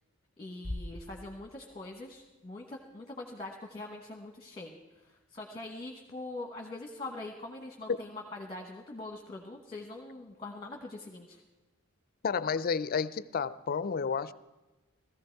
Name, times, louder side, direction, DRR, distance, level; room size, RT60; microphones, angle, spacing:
voice 1, 0.4-4.8 5.0-11.4, left 2 dB, 20° left, 2 dB, 1.2 m, -43 dB
Bass drum, 0.6-2.3, left 1 dB, 60° right, 4.6 m, -42 dB
voice 2, 12.2-14.3, left 6 dB, 45° left, 17 dB, 0.4 m, -31 dB
17.0 x 14.0 x 4.6 m, 1.1 s
head